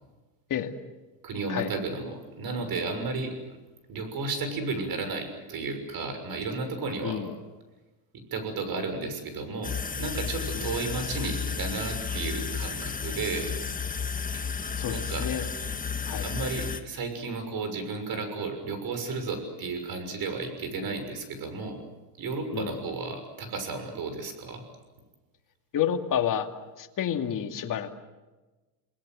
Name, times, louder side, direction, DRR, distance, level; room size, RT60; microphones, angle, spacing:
voice 1, 1.2-3.6 3.9-7.3 8.3-13.5 14.3-14.5 14.9-15.3 16.2-21.8 22.2-24.6, right 3 dB, 45° right, 7 dB, 6.5 m, -33 dB
voice 2, 7.0-7.3 10.5-10.7 14.8-15.4 16.1-16.3 22.5-22.7 25.7-26.5 26.8-27.9, left 9 dB, 40° left, 4 dB, 2.6 m, -29 dB
sound 1, 9.6-16.8, left 5 dB, 15° left, 1.6 m, -32 dB
29.0 x 20.5 x 7.8 m, 1.2 s
supercardioid pair, 115°, 49 cm